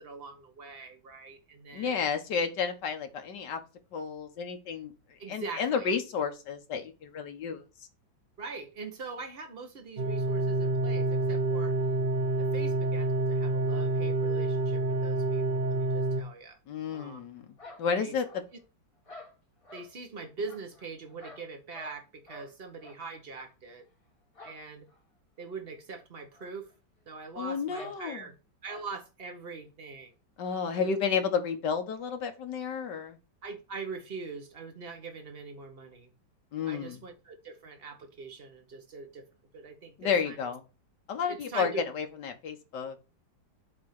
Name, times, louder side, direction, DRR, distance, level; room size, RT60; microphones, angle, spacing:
voice 1, 0.0-2.0 5.2-5.9 8.4-11.8 12.4-16.6 16.9-17.2 17.9-18.2 19.7-23.9 24.4-24.9 25.4-26.7 27.1-28.4 28.6-30.1 30.7-30.9 33.4-36.1 36.6-39.2 39.5-40.5 41.3-41.9, right 4 dB, 35° right, 1.2 m, -42 dB
voice 2, 1.7-3.6 3.9-4.9 5.3-7.6 16.7-17.5 17.8-18.3 27.4-28.3 30.4-33.2 36.5-37.0 40.0-40.6 41.1-43.0, left 6 dB, 65° left, 1.8 m, -31 dB
sound 1, 10.0-16.2, right 2 dB, 65° right, 0.4 m, -28 dB
sound 2, 17.6-18.6 19.1-19.9 20.5-22.0 22.3-22.5 22.8-23.0 23.3-23.5 24.3-24.6 24.9-25.0 25.4-25.5 26.3-26.5 26.7-26.8 27.7-28.0 28.6-28.9, left 2 dB, 20° left, 1.5 m, -49 dB
7.4 x 3.7 x 6.4 m
omnidirectional pair, 2.1 m